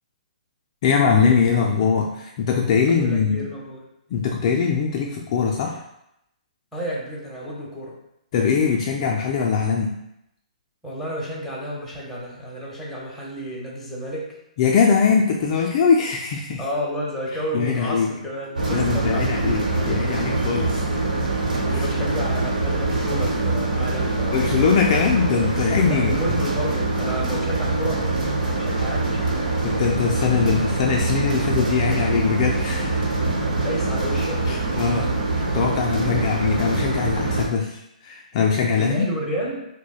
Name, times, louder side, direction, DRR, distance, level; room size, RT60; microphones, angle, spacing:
voice 1, 0.8-3.5 4.1-5.8 8.3-9.9 14.6-16.6 17.5-18.1 18.7-20.8 21.7-21.9 24.3-26.2 29.6-33.0 34.5-39.1, left 6 dB, 40° left, 0 dB, 0.4 m, -21 dB
voice 2, 2.9-3.8 6.7-8.0 10.8-14.4 16.6-20.1 21.6-24.4 25.9-28.1 28.6-29.5 30.4-30.5 33.4-34.6 38.8-39.6, equal, 5° left, -5 dB, 0.9 m, -31 dB
sound 1, 18.5-37.5, right 2 dB, 85° right, 0.9 m, -24 dB
4.8 x 2.1 x 2.3 m, 0.81 s
hypercardioid pair, 145°, 4 cm